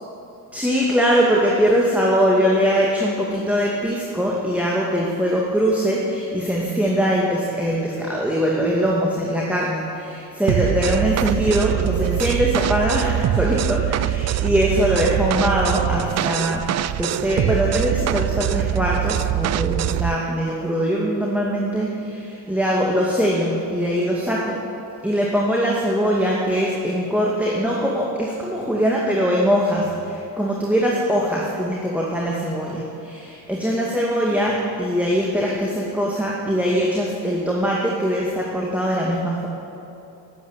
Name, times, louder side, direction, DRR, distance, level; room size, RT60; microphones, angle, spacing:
voice 1, 0.5-16.6 17.0-24.6 25.0-39.5, equal, 5° right, -4 dB, 2.4 m, -22 dB
sound 1, 10.5-20.2, right 13 dB, 35° right, 0.4 m, -23 dB
11.0 x 9.5 x 9.2 m, 2.8 s
hypercardioid pair, 55°, 49 cm